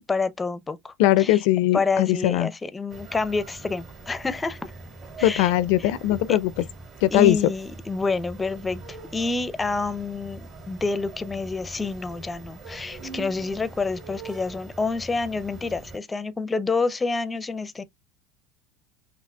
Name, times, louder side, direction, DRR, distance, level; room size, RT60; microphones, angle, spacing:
voice 1, 0.1-1.4 1.7-4.7 5.2-5.5 5.8-5.9 6.3-6.4 7.1-17.8, left 4 dB, 15° left, 0.5 m, -28 dB
voice 2, 1.0-2.5 5.2-6.6 7.0-7.5, left 14 dB, 70° left, 0.4 m, -20 dB
sound 1, 2.9-16.0, right 3 dB, 40° right, 2.2 m, -42 dB
5.7 x 2.4 x 2.2 m
supercardioid pair, 95°, 0 cm